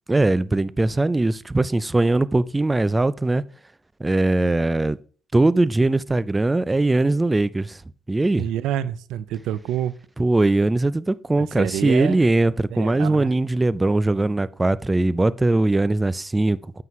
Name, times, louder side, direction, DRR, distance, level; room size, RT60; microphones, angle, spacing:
voice 1, 0.1-3.4 4.0-5.0 5.3-7.8 8.1-8.5 10.2-16.8, right 2 dB, 15° right, 0.4 m, -20 dB
voice 2, 8.4-9.9 11.4-12.2 12.7-13.3, right 11 dB, 90° right, 0.4 m, -27 dB
9.3 x 7.6 x 3.1 m
cardioid pair, 90°, 0 cm